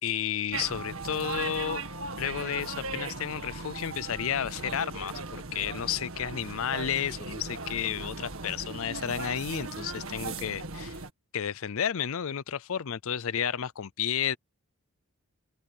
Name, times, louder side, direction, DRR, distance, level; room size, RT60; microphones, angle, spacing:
voice 1, 0.0-1.8 2.2-11.0 11.3-14.4, left 8 dB, 70° left, 0.5 m, -32 dB
sound 1, 0.5-11.1, right 3 dB, 65° right, 1.9 m, -38 dB
open air
head